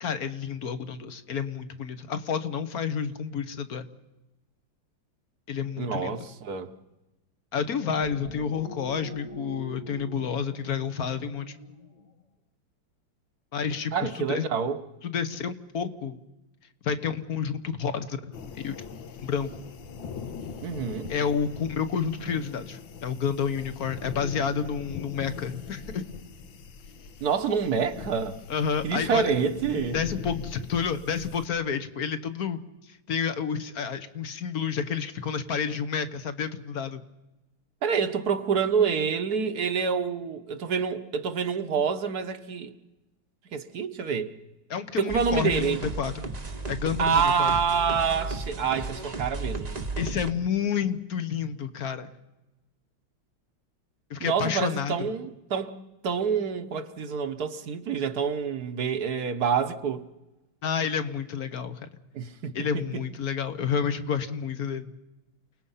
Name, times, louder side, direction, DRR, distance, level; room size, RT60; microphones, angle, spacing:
voice 1, 0.0-3.9 5.5-6.2 7.5-11.6 13.5-14.5 15.0-16.2 16.8-18.3 18.6-18.8 19.2-19.5 21.1-26.0 28.5-29.3 29.9-37.0 44.7-46.1 46.7-47.5 50.0-52.1 54.1-55.1 60.6-61.9 62.5-64.9, left 7 dB, 55° left, 1.5 m, -30 dB
voice 2, 5.8-6.7 13.9-14.8 20.6-21.1 27.2-28.4 28.8-30.0 37.8-42.7 43.5-44.3 45.0-45.8 47.0-49.8 54.2-60.0 62.1-62.8, right 6 dB, 55° right, 1.4 m, -27 dB
sound 1, 7.7-12.2, left 1 dB, 30° left, 1.0 m, -43 dB
sound 2, 18.3-31.5, left 5 dB, 75° left, 1.8 m, -41 dB
sound 3, 45.1-50.3, right 3 dB, 25° right, 1.0 m, -34 dB
29.0 x 19.5 x 5.6 m
omnidirectional pair, 2.1 m